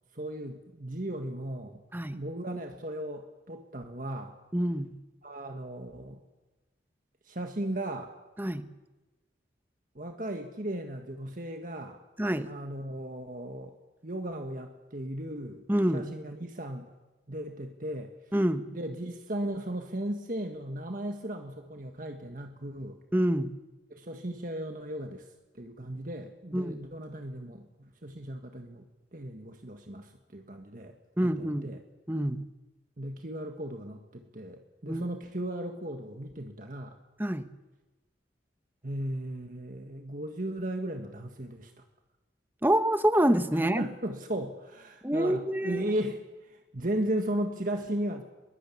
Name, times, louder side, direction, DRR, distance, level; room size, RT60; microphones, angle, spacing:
voice 1, 0.1-1.8 2.1-4.3 5.2-6.2 7.3-8.1 10.0-12.0 12.5-13.7 14.0-15.6 15.9-16.9 17.3-18.1 18.7-23.0 23.9-25.3 25.5-30.9 31.2-31.8 33.0-37.0 38.8-41.8 43.8-48.2, right 1 dB, 45° right, 5 dB, 1.6 m, -36 dB
voice 2, 1.9-2.2 4.5-5.0 8.4-8.7 12.2-12.5 15.7-16.1 18.3-18.7 23.1-23.6 26.5-26.8 31.2-31.7 32.1-32.5 34.9-35.0 37.2-37.5 42.6-43.9 45.0-45.8, right 1 dB, 10° right, 10 dB, 1.0 m, -27 dB
23.0 x 21.5 x 8.6 m, 1.1 s
head